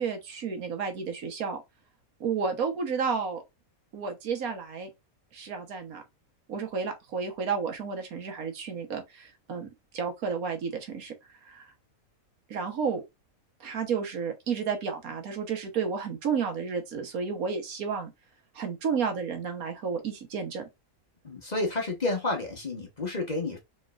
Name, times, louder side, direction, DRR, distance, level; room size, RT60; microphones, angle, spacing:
voice 1, 0.0-1.6 2.2-3.4 3.9-4.9 5.3-6.0 6.5-9.7 9.9-11.1 11.4-11.7 12.5-13.0 13.6-18.1 18.5-20.7, right 6 dB, 80° right, 1.5 m, -31 dB
voice 2, 21.2-23.6, left 2 dB, 30° left, 1.1 m, -30 dB
4.3 x 3.2 x 2.4 m
omnidirectional pair, 1.5 m